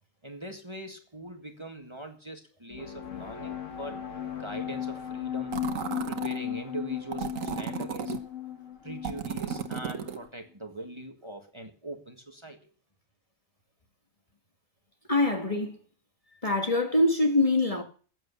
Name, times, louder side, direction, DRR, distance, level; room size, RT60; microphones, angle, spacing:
voice 1, 0.2-4.0 4.3-5.5 6.1-8.2 8.8-12.6, right 1 dB, 20° right, 1.7 m, -42 dB
sound 1, 2.7-10.3, left 10 dB, 70° left, 1.7 m, -36 dB
sound 2, 5.5-6.4 7.1-8.2 9.0-10.2, right 8 dB, 80° right, 1.5 m, -34 dB
voice 2, 15.1-15.8 16.4-17.8, left 2 dB, 25° left, 1.6 m, -24 dB
14.5 x 8.0 x 6.9 m
omnidirectional pair, 1.4 m